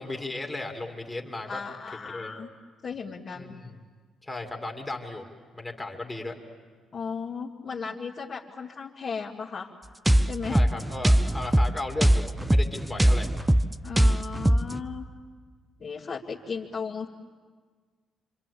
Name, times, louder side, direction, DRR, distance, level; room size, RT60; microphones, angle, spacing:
voice 1, 0.0-1.6 2.0-2.3 3.3-3.7 4.2-5.3 5.5-6.4 10.4-13.3, left 2 dB, 15° left, 2 dB, 2.7 m, -35 dB
voice 2, 1.5-2.5 2.8-3.6 6.9-9.7 10.2-10.6 13.8-15.1 15.8-17.1, left 5 dB, 45° left, -5 dB, 2.3 m, -35 dB
sound 1, 10.1-14.8, right 1 dB, 10° right, 0.8 m, -22 dB
26.5 x 26.0 x 8.5 m, 1.5 s
cardioid pair, 90°, 0 cm